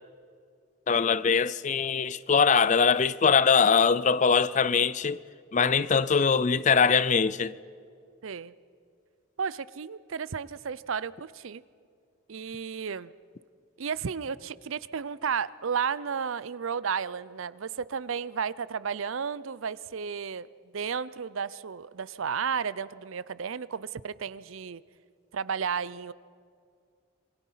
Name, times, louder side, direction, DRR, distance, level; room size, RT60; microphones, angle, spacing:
voice 1, 0.9-5.2 5.5-7.5, left 5 dB, 35° left, 0.4 m, -22 dB
voice 2, 8.2-8.5 9.4-11.6 12.3-13.1 13.8-20.5 20.7-24.8 25.3-26.1, right 6 dB, 70° right, 0.6 m, -33 dB
27.5 x 21.0 x 5.7 m
head